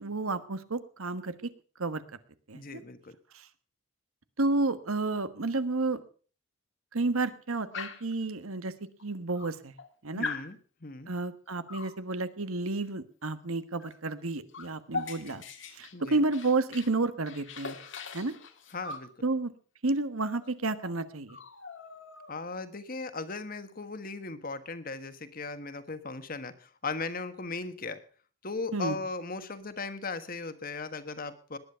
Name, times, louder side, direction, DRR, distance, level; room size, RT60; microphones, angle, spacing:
voice 1, 0.0-1.3 1.8-2.0 2.5-2.8 3.3-3.5 4.4-6.0 6.9-8.7 9.0-9.7 10.0-10.3 11.1-15.4 15.7-17.8 18.1-18.3 19.2-19.5 19.8-21.4 28.7-29.0, right 3 dB, 85° right, 12 dB, 1.4 m, -31 dB
voice 2, 2.5-3.1 10.1-11.1 15.9-16.2 18.7-19.1 22.3-28.0 28.4-31.6, left 3 dB, 40° left, 11 dB, 1.4 m, -37 dB
Dog, 7.7-8.2 9.0-9.1 9.4-9.9 10.2-10.5 11.7-12.0 13.8-14.0 14.2-17.0 17.3-19.1 20.4-20.5 20.8-21.0 21.3-22.5, left 4 dB, 60° left, 1.8 m, -40 dB
19.0 x 10.5 x 5.7 m, 0.40 s
head